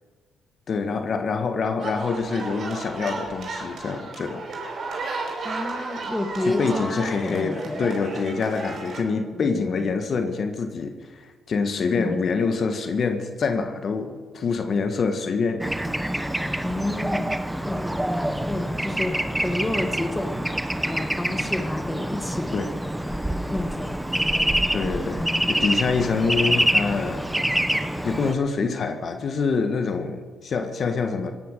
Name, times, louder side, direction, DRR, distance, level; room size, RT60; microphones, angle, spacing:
voice 1, 0.7-4.5 5.3-5.5 6.4-15.7 22.5-22.7 24.7-27.3 28.0-31.3, left 4 dB, 55° left, 7 dB, 1.6 m, -26 dB
sound 1, 1.8-9.0, right 3 dB, 55° right, 5.1 m, -34 dB
voice 2, 5.4-7.9 9.3-9.9 12.0-12.3 16.6-20.4 20.9-22.5 23.5-24.7 25.2-25.5, left 1 dB, 15° left, 7 dB, 1.9 m, -31 dB
Bird / Traffic noise roadway noise, 15.6-28.3, right 1 dB, 5° right, 1.0 m, -26 dB
17.0 x 10.5 x 6.6 m, 1.4 s
supercardioid pair, 65°, 0 cm